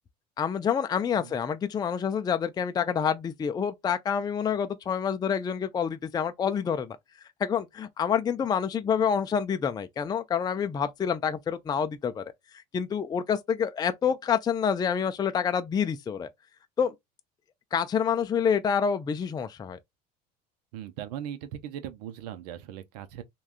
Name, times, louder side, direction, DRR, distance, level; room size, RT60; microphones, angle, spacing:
voice 1, 0.4-7.0 7.4-12.2 12.5-16.3 16.8-16.9 17.7-19.8, left 7 dB, 20° left, 0.4 m, -27 dB
voice 2, 20.7-23.2, right 10 dB, 85° right, 0.6 m, -39 dB
3.4 x 2.3 x 2.5 m
supercardioid pair, 95°, 20 cm